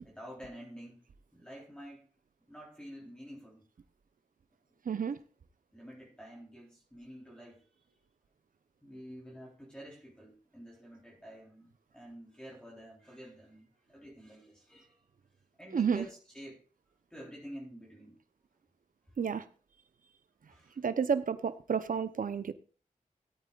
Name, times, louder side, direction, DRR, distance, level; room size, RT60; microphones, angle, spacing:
voice 1, 0.0-1.0 1.3-2.1 2.5-3.6 5.7-7.9 8.8-15.1 15.6-16.6 17.1-18.2 20.5-20.8, equal, 5° left, 3.7 m, -49 dB
voice 2, 4.9-5.2 15.7-16.0 19.2-19.4 20.8-22.5, right 6 dB, 75° right, 0.8 m, -30 dB
17.5 x 9.2 x 2.5 m
wide cardioid pair, 70°, 14 cm